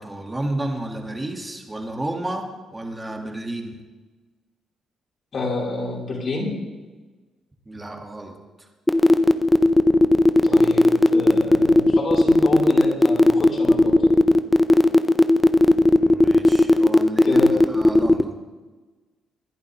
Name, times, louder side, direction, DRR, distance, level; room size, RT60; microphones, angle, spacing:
voice 1, 0.0-3.8 7.7-8.7 15.9-17.4 17.7-18.4, right 1 dB, 15° right, 2 dB, 2.2 m, -32 dB
voice 2, 5.3-6.5 10.4-14.2 17.2-17.5, left 3 dB, 50° left, -3 dB, 4.6 m, -29 dB
sound 1, 8.9-18.2, left 2 dB, 10° left, 0.7 m, -15 dB
20.0 x 11.0 x 3.4 m, 1.3 s
cardioid pair, 90°, 0 cm